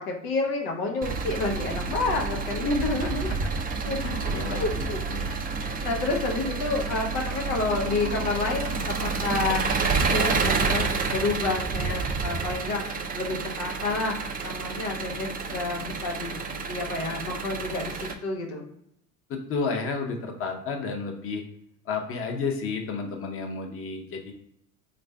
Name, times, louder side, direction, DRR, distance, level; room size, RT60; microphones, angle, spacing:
voice 1, 0.0-3.3 3.8-4.2 4.4-9.7 10.0-12.9 13.1-14.1 14.4-18.6, left 3 dB, 85° left, 1 dB, 0.8 m, -30 dB
Engine, 1.0-18.1, right 4 dB, 20° right, 0.4 m, -29 dB
voice 2, 4.0-4.6 5.1-5.3 19.3-21.4 21.9-24.3, left 4 dB, 30° left, 2 dB, 0.7 m, -31 dB
3.1 x 2.5 x 3.3 m, 0.75 s
hypercardioid pair, 80°, 42 cm